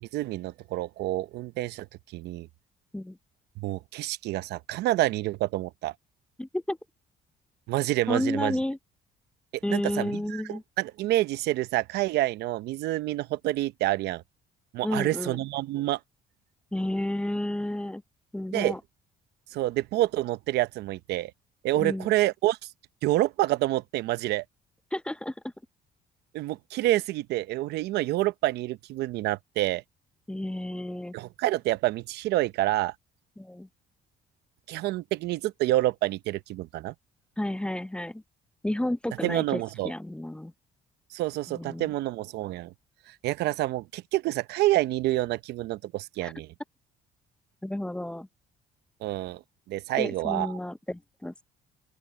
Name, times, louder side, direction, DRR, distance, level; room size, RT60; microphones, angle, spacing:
voice 1, 0.0-1.9 2.1-2.5 3.6-5.9 7.7-8.5 9.7-14.2 14.7-16.0 18.5-18.7 19.5-21.3 21.6-22.6 23.0-24.4 26.3-29.8 31.1-32.9 34.7-36.9 39.2-39.9 41.1-42.7 43.1-46.5 49.0-49.4 49.7-50.5, right 16 dB, 80° right, 0.7 m, -28 dB
voice 2, 6.4-6.8 8.1-8.8 9.6-10.6 14.8-15.4 16.7-18.0 18.3-18.8 21.8-22.1 24.9-25.3 30.3-31.1 33.4-33.7 37.4-38.2 38.6-40.5 41.5-41.9 46.2-46.3 47.6-48.3 50.0-51.4, left 1 dB, 5° left, 0.6 m, -31 dB
open air
cardioid pair, 110°, 17 cm